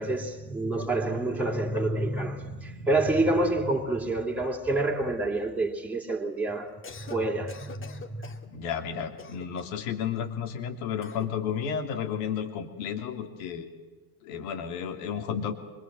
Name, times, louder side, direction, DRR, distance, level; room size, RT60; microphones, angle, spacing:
voice 1, 0.0-6.8 7.0-8.3, right 2 dB, 5° right, 3.3 m, -28 dB
Cough, 6.7-7.2 7.5-8.5 9.2-9.8 11.0-11.3, left 4 dB, 25° left, 2.5 m, -44 dB
voice 2, 8.5-13.7 14.2-15.5, left 7 dB, 60° left, 3.1 m, -32 dB
25.5 x 23.0 x 7.7 m
figure-of-eight pair, 75°, 45 cm